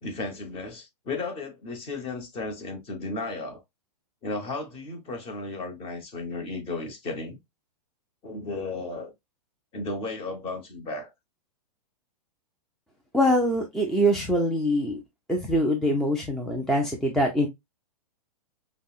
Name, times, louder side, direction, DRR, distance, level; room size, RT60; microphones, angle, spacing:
voice 1, 0.0-3.6 4.2-7.4 8.2-9.1 9.7-11.1, left 3 dB, 30° left, 1.0 m, -34 dB
voice 2, 13.1-15.0 15.3-17.5, equal, ahead, 0.4 m, -24 dB
5.2 x 2.0 x 2.3 m
hypercardioid pair, 125°, 20 cm